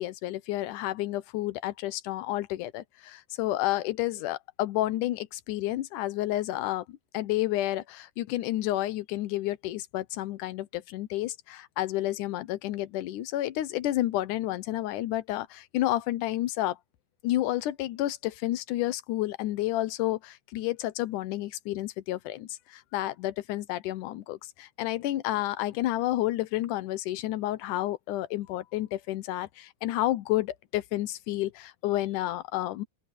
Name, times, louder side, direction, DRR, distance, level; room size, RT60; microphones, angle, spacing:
voice 1, 0.0-16.8 17.2-32.8, left 15 dB, 75° left, 2.2 m, -30 dB
open air
omnidirectional pair, 4.0 m